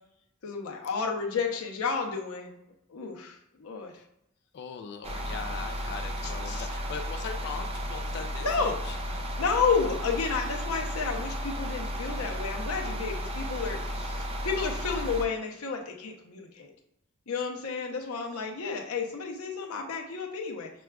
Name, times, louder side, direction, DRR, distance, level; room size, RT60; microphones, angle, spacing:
voice 1, 0.4-2.5 2.9-3.9 6.2-6.7 8.4-8.8 9.4-16.7 17.3-20.7, left 5 dB, 80° left, 2 dB, 0.8 m, -31 dB
voice 2, 4.5-9.3, left 6 dB, 50° left, 6 dB, 0.3 m, -40 dB
sound 1, 5.0-15.3, equal, 25° right, 0.4 m, -34 dB
6.0 x 2.3 x 2.3 m, 0.80 s
head